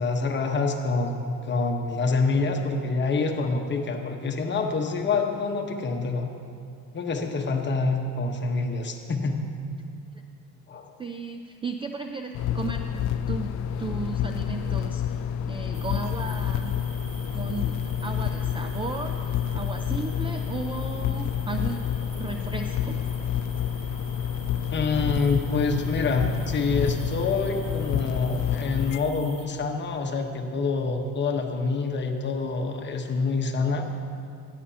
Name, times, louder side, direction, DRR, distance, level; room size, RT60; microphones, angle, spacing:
voice 1, 0.0-6.3 6.9-9.4 10.7-10.9 24.7-33.9, left 4 dB, 30° left, 3 dB, 1.1 m, -26 dB
voice 2, 11.0-16.9 17.3-23.1, right 4 dB, 15° right, 5 dB, 0.3 m, -35 dB
sound 1, 12.3-29.0, left 9 dB, 55° left, 0.4 m, -29 dB
sound 2, 15.7-29.5, right 4 dB, 35° right, 1.2 m, -48 dB
15.5 x 10.5 x 2.8 m, 2.4 s
cardioid pair, 120°, 35 cm